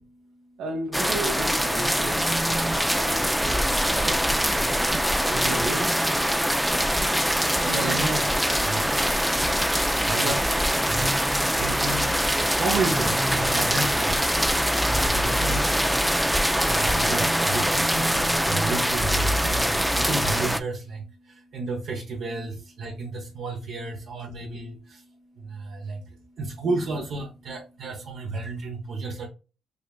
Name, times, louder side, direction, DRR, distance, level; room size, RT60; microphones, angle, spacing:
voice 1, 0.6-6.0 15.2-15.7 19.4-19.6, right 2 dB, 90° right, 1.4 m, -35 dB
sound 1, 0.9-20.6, equal, ahead, 0.4 m, -23 dB
voice 2, 7.3-8.3 8.6-8.8 10.1-11.1 11.6-12.2 12.4-14.1 14.6-15.8 16.7-21.0 21.3-25.0 25.4-26.0 26.4-29.3, right 3 dB, 65° right, 0.9 m, -32 dB
5.0 x 2.4 x 2.3 m
cardioid pair, 90°, 0 cm